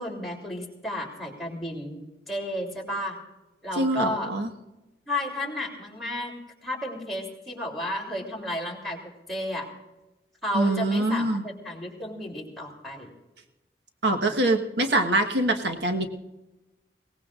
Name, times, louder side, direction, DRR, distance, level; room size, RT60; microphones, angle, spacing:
voice 1, 0.0-3.2 3.6-4.3 5.1-6.3 6.6-9.0 9.3-9.7 10.4-13.1, left 1 dB, ahead, -3 dB, 3.2 m, -32 dB
voice 2, 3.7-4.5 10.5-11.4 14.0-16.1, right 2 dB, 80° right, 4 dB, 1.4 m, -24 dB
22.5 x 18.5 x 2.5 m, 1.0 s
head